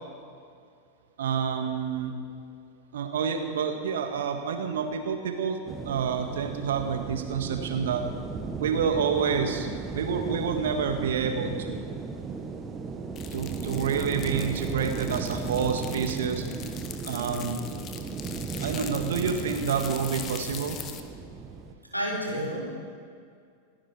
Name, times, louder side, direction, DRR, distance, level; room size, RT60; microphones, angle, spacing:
voice 1, 1.2-2.1 2.9-5.6 5.8-8.0 8.6-9.7 9.9-11.8 13.3-16.4 17.0-17.6 18.6-20.8, right 6 dB, 60° right, 5 dB, 1.8 m, -28 dB
sound 1, 5.7-21.7, right 4 dB, 20° right, 1.3 m, -36 dB
sound 2, 13.2-21.0, left 8 dB, 30° left, 1.1 m, -42 dB
voice 2, 21.9-22.7, equal, 90° left, -4 dB, 3.9 m, -30 dB
28.0 x 10.0 x 4.5 m, 2.2 s
figure-of-eight pair, 90°, 0 cm